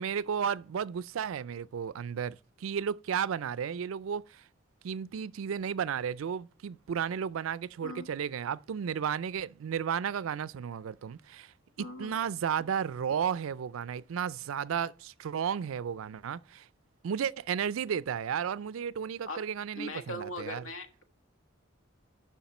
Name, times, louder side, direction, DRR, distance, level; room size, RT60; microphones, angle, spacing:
voice 1, 0.0-4.4 4.8-11.5 12.0-16.7 17.0-20.6, right 7 dB, 90° right, 0.4 m, -33 dB
voice 2, 11.8-12.1 19.3-19.4 19.7-21.0, left 1 dB, 85° left, 1.3 m, -40 dB
7.1 x 5.9 x 5.9 m
head